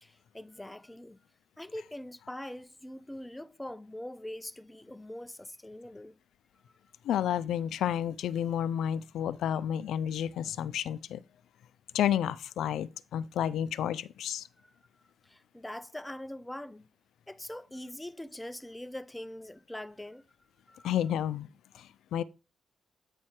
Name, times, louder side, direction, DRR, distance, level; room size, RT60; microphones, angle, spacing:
voice 1, 0.0-1.2 1.6-6.2 14.6-14.7 15.2-16.9 17.3-20.2 20.7-20.9, left 1 dB, 5° left, 0.3 m, -43 dB
voice 2, 7.0-11.2 11.9-14.5 20.8-21.5 21.7-22.2, left 10 dB, 85° left, 0.4 m, -31 dB
8.4 x 4.7 x 4.3 m
wide cardioid pair, 180°, 0 cm